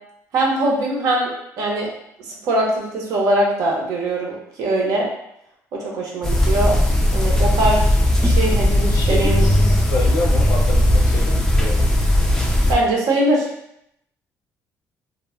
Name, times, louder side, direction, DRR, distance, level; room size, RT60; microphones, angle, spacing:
voice 1, 0.3-1.9 2.2-5.1 5.7-6.8 7.1-7.9 8.2-9.7 12.7-13.5, right 1 dB, 70° right, -1 dB, 0.7 m, -21 dB
sound 1, 6.2-12.7, left 1 dB, 10° left, 0.3 m, -17 dB
voice 2, 8.9-11.9, left 2 dB, 75° left, 1 dB, 0.6 m, -28 dB
2.1 x 2.0 x 3.5 m, 0.78 s
cardioid pair, 125°, 6 cm